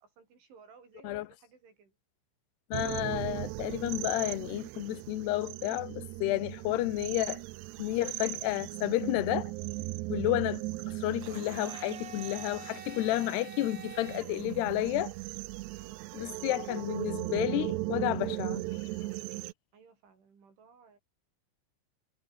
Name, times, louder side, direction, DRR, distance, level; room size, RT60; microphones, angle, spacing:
voice 1, 0.0-2.0 14.2-14.7 15.7-16.1 19.7-21.0, right 5 dB, 70° right, 9.3 m, -58 dB
voice 2, 2.7-7.4 7.8-9.4 10.1-15.1 16.1-18.6, left 16 dB, 70° left, 2.9 m, -31 dB
sound 1, 2.7-19.5, right 20 dB, 90° right, 2.4 m, -38 dB
Domestic sounds home sounds, 11.2-15.2, right 6 dB, 45° right, 1.6 m, -48 dB
omnidirectional pair, 5.7 m